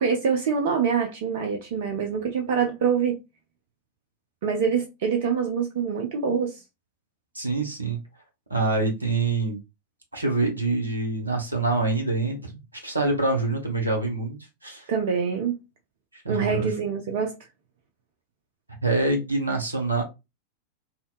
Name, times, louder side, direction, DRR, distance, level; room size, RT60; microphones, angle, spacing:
voice 1, 0.0-3.2 4.4-6.6 14.9-15.5 16.3-17.4, right 6 dB, 55° right, 0.4 m, -25 dB
voice 2, 7.3-8.0 8.5-9.6 10.1-14.4 14.6-14.8 16.2-16.7 18.8-20.0, right 3 dB, 85° right, 0.8 m, -25 dB
2.7 x 2.2 x 2.4 m
figure-of-eight pair, 90°, 0 cm